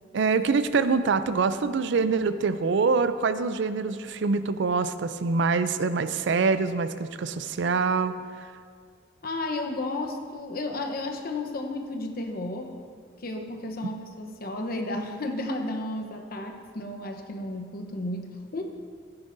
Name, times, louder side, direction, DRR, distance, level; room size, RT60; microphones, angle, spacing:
voice 1, 0.1-8.2, right 4 dB, 70° right, 12 dB, 0.4 m, -25 dB
voice 2, 9.2-12.8 13.2-18.6, left 2 dB, 55° left, 4 dB, 0.9 m, -33 dB
14.5 x 9.7 x 2.6 m, 2.1 s
head